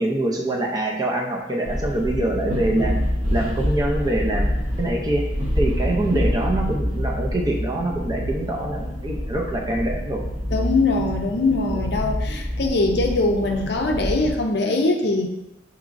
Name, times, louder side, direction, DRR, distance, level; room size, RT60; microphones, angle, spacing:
voice 1, 0.0-3.0 3.3-4.5 4.8-5.2 5.6-10.2 11.7-11.9, right 1 dB, 20° right, -1 dB, 0.5 m, -24 dB
sound 1, 1.6-14.3, equal, 40° right, 0.9 m, -26 dB
voice 2, 10.5-15.3, left 2 dB, 60° left, 3 dB, 0.5 m, -22 dB
5.8 x 3.0 x 2.5 m, 0.94 s
head